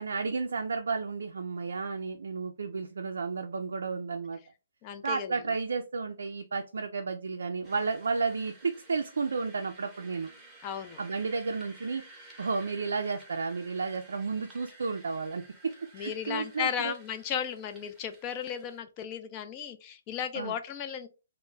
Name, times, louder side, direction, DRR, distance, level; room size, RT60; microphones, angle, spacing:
voice 1, 0.0-4.4 5.0-10.3 11.0-12.0 12.4-16.9 20.3-20.5, right 4 dB, 80° right, 4 dB, 0.3 m, -32 dB
voice 2, 4.8-5.4 10.6-11.0 15.9-21.1, left 8 dB, 30° left, 8 dB, 0.4 m, -35 dB
sound 1, 7.6-18.8, right 2 dB, 10° right, 0.8 m, -54 dB
2.2 x 2.0 x 3.8 m, 0.30 s
hypercardioid pair, 145°, 0 cm